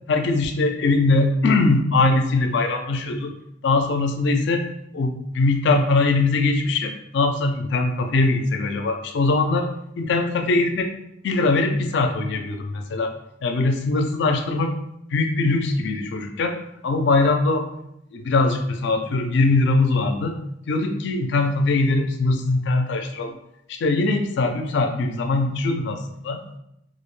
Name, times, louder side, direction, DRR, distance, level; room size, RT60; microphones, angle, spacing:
voice 1, 0.1-3.3 3.6-4.7 4.9-9.7 10.0-10.9 11.2-13.1 13.4-14.8 15.1-16.6 16.8-17.7 18.1-20.4 20.7-23.3 23.7-26.6, left 3 dB, 65° left, 6 dB, 0.3 m, -21 dB
2.4 x 2.0 x 3.0 m, 0.78 s
head